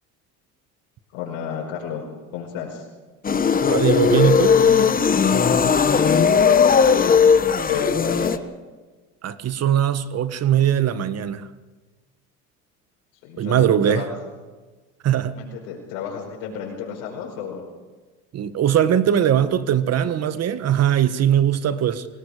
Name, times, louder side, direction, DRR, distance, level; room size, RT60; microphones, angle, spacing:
voice 1, 1.1-2.1 2.3-2.9 5.9-6.5 6.9-7.3 7.7-8.4 13.2-14.3 15.3-17.7, left 7 dB, 80° left, 5.2 m, -30 dB
sound 1, 3.2-8.4, left 6 dB, 25° left, 1.2 m, -17 dB
voice 2, 3.7-4.6 9.2-11.5 13.4-14.1 15.0-15.4 18.3-22.1, right 10 dB, 45° right, 1.5 m, -20 dB
27.5 x 18.5 x 5.1 m
supercardioid pair, 95°, 35 cm